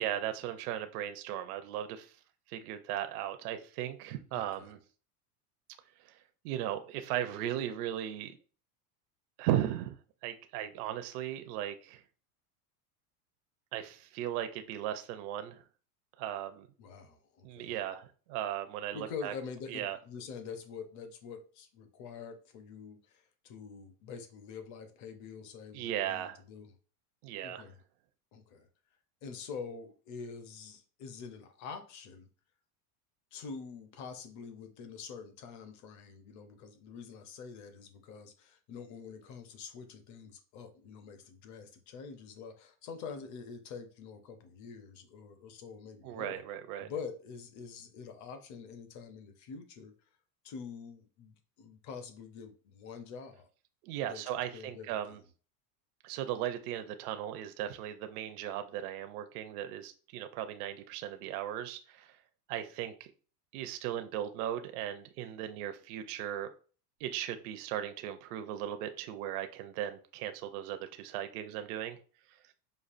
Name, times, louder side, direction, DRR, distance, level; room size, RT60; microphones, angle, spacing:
voice 1, 0.0-2.1 2.5-4.8 6.0-6.2 6.4-8.4 9.4-9.9 10.2-12.0 13.7-15.6 16.2-16.7 17.4-19.3 19.7-20.0 25.7-26.4 27.2-27.6 46.0-46.9 53.8-55.2 56.0-62.2 62.5-63.1 63.5-66.5 67.0-72.0 72.3-72.4, right 11 dB, 70° right, 0.6 m, -37 dB
voice 2, 4.3-4.7 16.8-17.8 18.9-26.7 27.4-27.8 28.3-28.7 29.2-32.3 33.3-46.4 46.8-49.9 50.4-53.5 54.0-55.2, left 5 dB, 40° left, 0.7 m, -46 dB
5.2 x 2.3 x 2.5 m
supercardioid pair, 140°, 47 cm